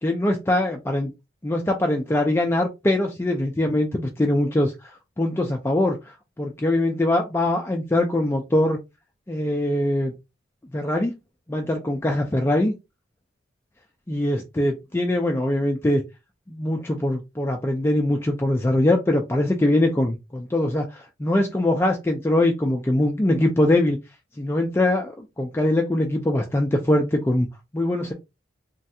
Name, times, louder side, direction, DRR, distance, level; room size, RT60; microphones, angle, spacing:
voice 1, 0.0-1.1 1.4-4.9 5.2-8.8 9.3-10.1 10.7-11.1 11.5-12.7 14.1-16.0 16.5-24.0 24.4-27.5 27.7-28.1, left 1 dB, 15° left, 0.3 m, -22 dB
3.2 x 2.3 x 2.7 m
head